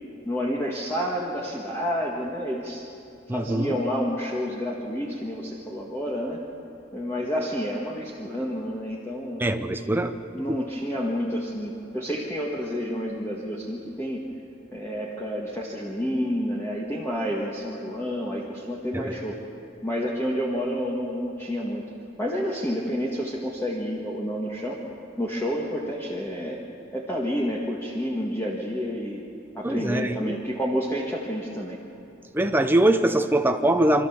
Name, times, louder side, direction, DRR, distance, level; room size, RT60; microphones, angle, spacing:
voice 1, 0.2-2.8 3.3-6.4 6.9-9.4 10.3-14.2 14.7-19.4 19.8-21.8 22.2-24.8 25.2-26.6 26.9-29.2 29.5-31.8, equal, 15° left, -4 dB, 1.7 m, -29 dB
voice 2, 3.3-3.7 9.4-10.6 18.9-19.2 29.6-30.4 32.3-34.1, right 1 dB, 10° right, 7 dB, 0.9 m, -23 dB
27.0 x 13.5 x 7.2 m, 2.8 s
head